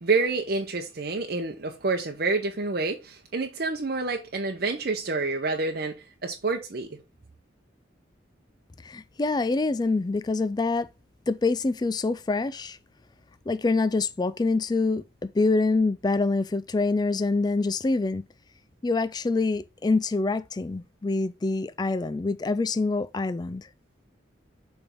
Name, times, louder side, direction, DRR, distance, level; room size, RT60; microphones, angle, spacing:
voice 1, 0.0-7.0, right 3 dB, 55° right, 0.8 m, -28 dB
voice 2, 8.8-10.9 11.3-12.8 13.5-15.0 15.3-18.2 18.8-23.7, left 3 dB, 20° left, 0.3 m, -25 dB
7.1 x 3.5 x 5.2 m
head